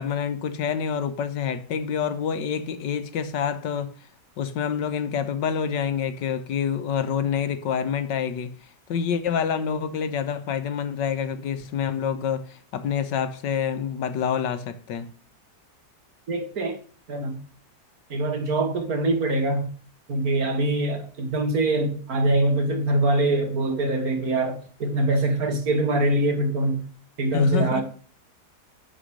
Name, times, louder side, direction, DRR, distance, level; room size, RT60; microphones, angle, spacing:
voice 1, 0.0-4.1 4.4-15.1 27.3-27.8, left 7 dB, 80° left, 1.6 m, -27 dB
voice 2, 16.3-16.8 17.1-17.4 18.1-19.7 20.1-26.8 27.2-27.8, right 2 dB, 55° right, 2.1 m, -23 dB
11.0 x 5.0 x 6.4 m
omnidirectional pair, 1.9 m